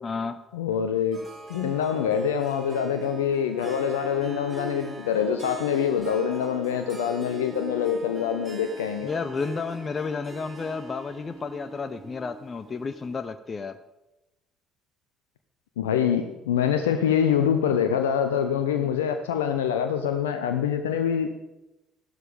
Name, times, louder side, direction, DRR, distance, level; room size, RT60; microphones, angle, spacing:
voice 1, 0.0-0.4 9.0-13.8, left 5 dB, 35° left, 11 dB, 0.7 m, -32 dB
voice 2, 0.5-1.2 1.5-9.1 15.8-21.3, left 8 dB, 75° left, 7 dB, 0.7 m, -25 dB
Harp, 1.1-13.3, right 1 dB, 30° right, 2.9 m, -41 dB
15.0 x 12.5 x 5.2 m, 0.99 s
figure-of-eight pair, 50°, 0 cm